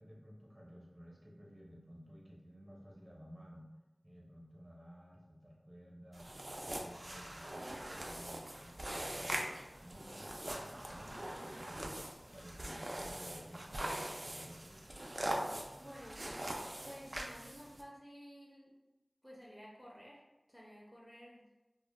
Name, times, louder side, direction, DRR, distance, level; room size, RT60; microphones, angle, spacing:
voice 1, 0.0-3.7 4.0-6.3 6.6-9.4 9.8-14.9, equal, 30° right, -3 dB, 0.7 m, -55 dB
sound 1, 6.1-17.8, right 1 dB, 55° right, 0.3 m, -42 dB
voice 2, 15.8-16.2 16.8-18.7 19.2-20.2 20.5-21.5, equal, 15° left, -4 dB, 0.5 m, -53 dB
2.0 x 2.0 x 3.1 m, 1.1 s
wide cardioid pair, 40°, 0 cm